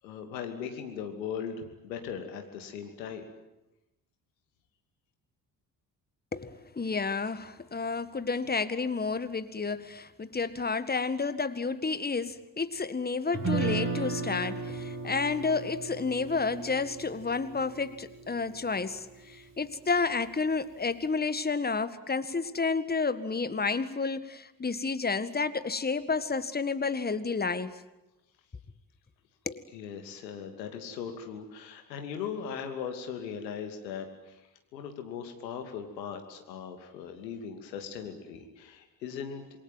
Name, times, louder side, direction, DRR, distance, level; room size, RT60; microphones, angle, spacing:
voice 1, 0.0-3.2 19.3-19.4 29.7-34.4 34.7-39.4, left 7 dB, 80° left, 6 dB, 2.8 m, -39 dB
voice 2, 6.3-27.8 29.4-29.6, left 4 dB, 20° left, 14 dB, 1.7 m, -31 dB
Guitar, 13.3-19.5, right 4 dB, 25° right, 7.1 m, -35 dB
27.5 x 22.5 x 9.3 m, 0.94 s
figure-of-eight pair, 45°, 50 cm